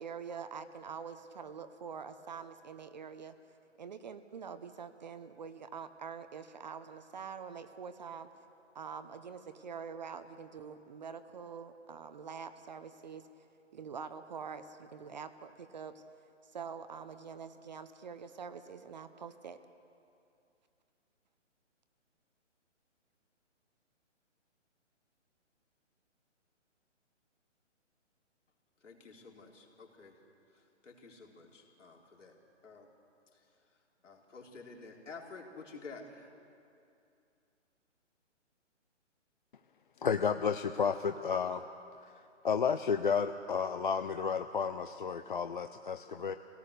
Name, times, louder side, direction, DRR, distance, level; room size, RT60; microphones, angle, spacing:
voice 1, 0.0-3.4 3.8-8.3 8.7-13.3 13.7-16.0 16.4-19.6, right 6 dB, 35° right, 10 dB, 0.8 m, -45 dB
voice 2, 28.8-30.2 30.5-32.4 32.6-32.9 33.3-36.3, left 4 dB, 75° left, 0 dB, 3.9 m, -51 dB
voice 3, 40.0-41.6 42.0-42.1 42.4-46.4, left 6 dB, 45° left, 9 dB, 0.5 m, -32 dB
24.5 x 17.5 x 6.6 m, 2.5 s
hypercardioid pair, 160°, 37 cm